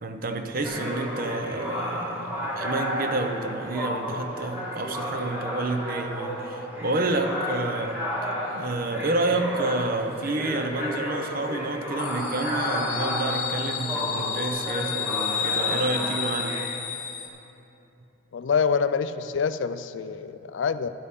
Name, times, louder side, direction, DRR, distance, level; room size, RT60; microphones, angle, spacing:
voice 1, 0.0-8.0 8.5-16.6, right 2 dB, 45° right, 6 dB, 0.7 m, -29 dB
sound 1, 0.6-16.6, equal, 10° right, 1.8 m, -32 dB
sound 2, 12.0-17.3, left 7 dB, 40° left, 0.9 m, -31 dB
voice 2, 18.3-20.9, left 6 dB, 70° left, 13 dB, 0.4 m, -26 dB
12.5 x 11.0 x 3.7 m, 2.9 s
head